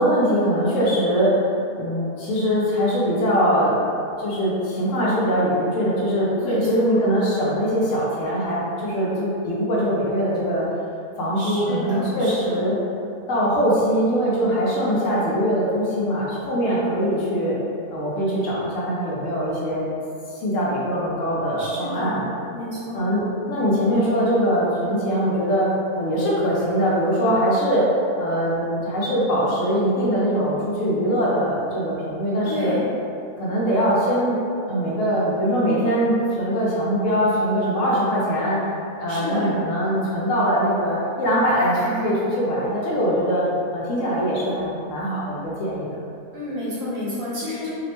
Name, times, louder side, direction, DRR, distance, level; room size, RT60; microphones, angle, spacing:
voice 1, 0.0-1.4 1.8-3.8 4.2-10.7 11.2-12.8 13.3-17.5 17.9-19.9 20.3-22.2 22.9-27.9 28.2-32.7 33.4-34.4 34.7-38.6 39.0-43.4 43.7-45.9, equal, 70° left, -6 dB, 0.9 m, -22 dB
voice 2, 6.4-7.0 11.4-12.7 21.6-23.1 32.4-32.9 39.1-39.5 46.3-47.7, left 1 dB, 65° right, -9 dB, 1.2 m, -30 dB
2.8 x 2.0 x 2.8 m, 2.5 s
omnidirectional pair, 1.5 m